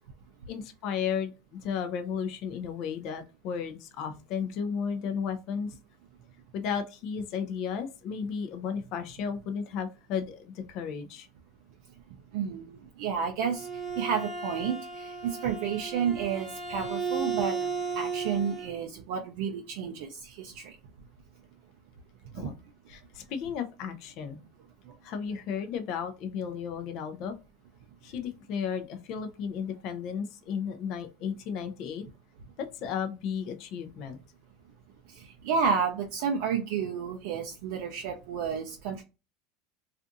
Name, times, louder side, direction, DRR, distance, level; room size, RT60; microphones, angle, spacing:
voice 1, 0.5-5.8 6.5-11.3 22.3-22.5 22.9-24.4 25.0-27.4 28.0-32.0 32.6-34.2, left 7 dB, 60° left, 7 dB, 0.4 m, -34 dB
voice 2, 12.3-12.7 13.0-13.7 14.0-17.5 18.0-20.1 20.4-20.6 22.4-22.5 35.4-39.0, right 6 dB, 70° right, 2 dB, 0.4 m, -30 dB
Bowed string instrument, 13.2-18.7, right 5 dB, 10° right, 0.7 m, -34 dB
2.5 x 2.4 x 2.5 m, 0.29 s
hypercardioid pair, 100°, 0 cm